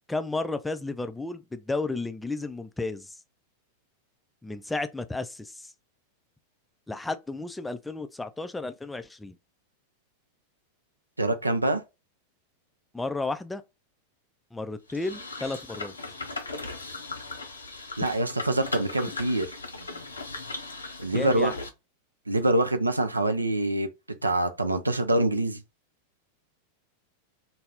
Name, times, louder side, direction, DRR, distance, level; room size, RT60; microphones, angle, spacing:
voice 1, 0.1-3.1 4.4-5.7 6.9-9.4 12.9-13.6 14.5-15.9 21.1-21.5, left 3 dB, 5° left, 0.3 m, -33 dB
voice 2, 11.2-11.8 18.0-19.6 21.0-21.5 22.3-23.9 24.2-25.6, right 1 dB, 80° right, 0.4 m, -25 dB
sound 1, 14.9-21.7, left 3 dB, 75° left, 0.5 m, -38 dB
2.3 x 2.0 x 3.4 m
figure-of-eight pair, 90°, 0 cm